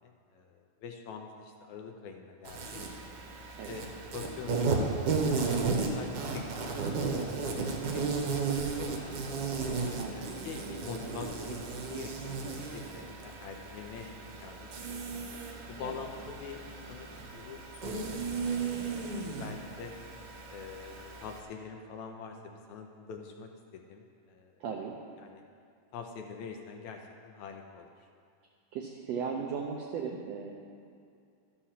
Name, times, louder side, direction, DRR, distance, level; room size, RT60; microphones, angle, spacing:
voice 1, 0.0-2.8 3.7-6.9 7.2-7.5 7.8-9.4 10.0-11.6 11.9-14.1 14.4-15.2 15.7-16.6 16.9-18.2 18.5-20.0 20.5-24.5 25.2-25.4 25.9-27.9, left 5 dB, 75° left, 3 dB, 1.8 m, -45 dB
Insect, 2.4-21.4, right 4 dB, 70° right, 2.3 m, -34 dB
voice 2, 10.0-10.4 15.8-16.0 24.6-24.9 28.7-30.5, right 6 dB, 85° right, 0 dB, 1.4 m, -37 dB
12.5 x 5.6 x 5.7 m, 2.4 s
omnidirectional pair, 3.7 m